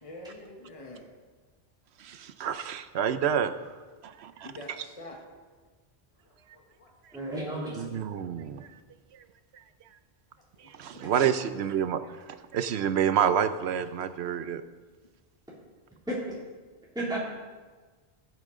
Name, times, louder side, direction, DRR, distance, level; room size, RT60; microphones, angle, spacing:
voice 1, 0.0-1.1 2.4-2.6 4.4-5.2 6.2-6.9 10.5-10.7 11.2-11.3, left 1 dB, 35° left, 0 dB, 1.4 m, -45 dB
voice 2, 2.0-3.5 4.0-4.5 7.7-8.7 10.6-12.0 12.3-14.6, right 8 dB, 80° right, 11 dB, 0.9 m, -28 dB
voice 3, 7.1-7.8 16.1-16.4 16.9-17.2, right 1 dB, 5° right, -7 dB, 2.6 m, -32 dB
16.0 x 8.5 x 3.8 m, 1.4 s
omnidirectional pair, 1.1 m